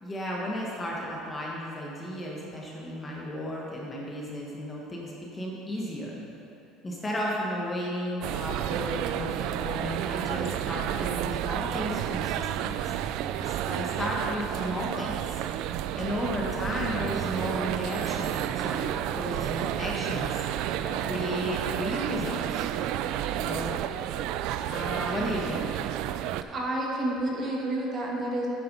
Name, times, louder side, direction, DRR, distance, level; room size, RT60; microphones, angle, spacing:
voice 1, 0.0-6.2 6.8-12.8 13.3-15.4 16.0-20.4 20.8-22.7 23.3-23.7 24.7-25.7, equal, 15° left, -3 dB, 1.1 m, -34 dB
sound 1, 8.2-26.4, right 11 dB, 60° right, 0.3 m, -31 dB
voice 2, 26.5-28.5, right 1 dB, 25° right, -2 dB, 1.3 m, -29 dB
9.0 x 7.7 x 5.4 m, 2.9 s
cardioid pair, 170°, 0 cm